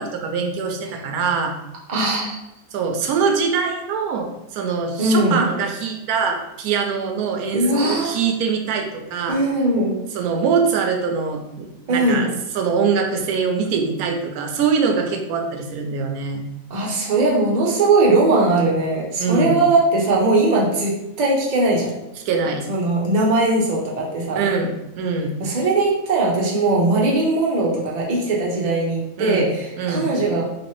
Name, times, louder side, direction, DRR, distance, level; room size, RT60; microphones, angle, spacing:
voice 1, 0.0-1.5 2.7-9.4 10.1-16.4 19.2-19.6 22.3-22.6 24.3-25.4 29.2-29.5 29.8-30.1, right 5 dB, 85° right, 3 dB, 1.1 m, -23 dB
voice 2, 1.9-2.4 5.0-5.5 7.5-8.2 9.3-10.0 11.9-12.3 16.7-21.9 22.7-24.5 25.4-30.5, right 2 dB, 40° right, -3 dB, 0.7 m, -19 dB
3.1 x 3.0 x 3.0 m, 0.88 s
omnidirectional pair, 1.5 m